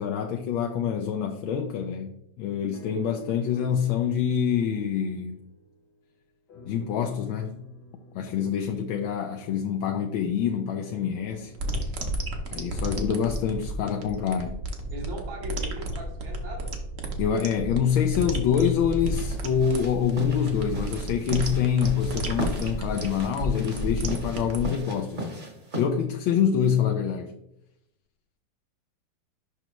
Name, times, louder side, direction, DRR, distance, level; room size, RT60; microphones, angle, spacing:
voice 1, 0.0-5.4 6.7-7.7 8.1-11.5 12.5-14.6 17.2-25.4 25.7-27.3, left 8 dB, 80° left, 3 dB, 1.4 m, -26 dB
sound 1, 2.7-6.1 6.5-10.2 10.9-15.1 15.7-15.8, right 2 dB, 60° left, 1.8 m, -49 dB
sound 2, 11.6-24.7, right 1 dB, 50° right, 1.1 m, -32 dB
voice 2, 14.9-16.8, right 1 dB, 75° right, -1 dB, 2.2 m, -39 dB
sound 3, 19.1-25.9, right 1 dB, 30° right, 1.0 m, -37 dB
6.5 x 5.7 x 3.0 m, 0.80 s
omnidirectional pair, 2.2 m